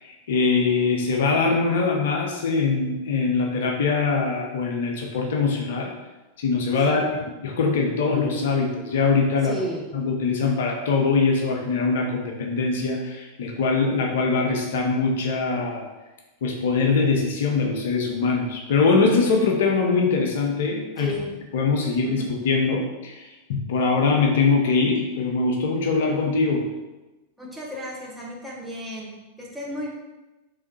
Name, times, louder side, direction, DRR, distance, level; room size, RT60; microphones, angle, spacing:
voice 1, 0.0-5.9 6.4-7.0 7.4-9.5 9.9-15.9 16.4-21.1 21.5-26.6, left 4 dB, 55° left, 1 dB, 0.5 m, -22 dB
voice 2, 6.8-7.2 9.4-9.9 21.0-21.5 21.9-22.3 27.4-29.9, equal, 5° right, -5 dB, 0.9 m, -34 dB
3.5 x 3.3 x 2.8 m, 1.1 s
figure-of-eight pair, 90°, 0 cm